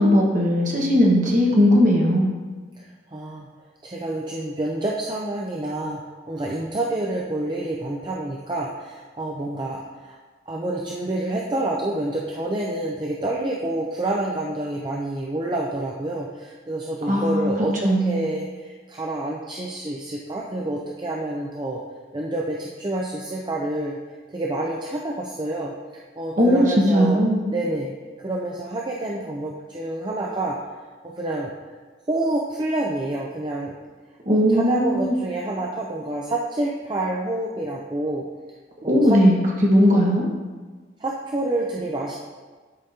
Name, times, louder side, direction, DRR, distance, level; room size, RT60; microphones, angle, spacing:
voice 1, 0.0-2.3 17.1-17.5 17.8-18.2 26.4-27.4 34.3-35.2 38.9-40.3, equal, 40° right, -2 dB, 1.3 m, -18 dB
voice 2, 2.8-3.5 3.8-6.0 6.3-10.2 10.5-21.8 22.1-24.0 24.3-25.7 26.2-27.2 27.5-27.9 28.2-30.6 31.0-31.5 32.1-33.8 34.3-38.3 38.8-39.2 41.0-42.1, right 2 dB, 25° right, -2 dB, 0.5 m, -28 dB
11.0 x 5.0 x 2.8 m, 1.4 s
head